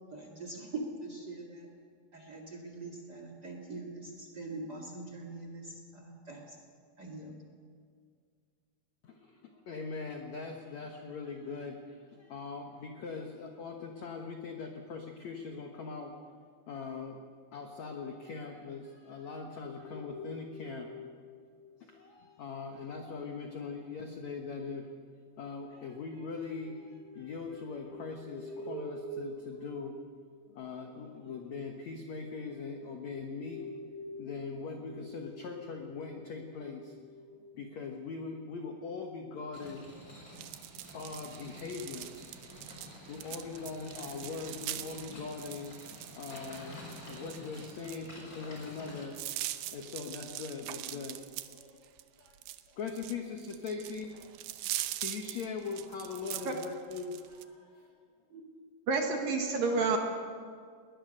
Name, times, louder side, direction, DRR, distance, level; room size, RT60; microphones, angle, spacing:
voice 1, 0.1-1.7 2.1-6.5 7.0-7.3, right 2 dB, 40° right, 2 dB, 1.6 m, -43 dB
voice 2, 9.0-16.1 16.7-17.2 17.5-21.1 21.8-24.9 25.4-30.0 30.5-36.9 37.6-40.1 40.9-42.1 43.1-49.2 49.7-51.8 52.2-52.4 52.7-54.1 55.0-57.9, left 4 dB, 80° left, 3 dB, 1.6 m, -41 dB
sound 1, 19.8-21.6 26.1-30.5 31.9-38.1, equal, 45° left, 7.3 m, -47 dB
sound 2, 39.5-49.0, equal, 20° left, 4.7 m, -50 dB
sound 3, 40.4-57.4, right 14 dB, 85° right, 2.2 m, -42 dB
voice 3, 58.9-60.0, right 4 dB, 60° right, 3 dB, 2.8 m, -29 dB
21.0 x 20.0 x 6.6 m, 2.1 s
omnidirectional pair, 5.4 m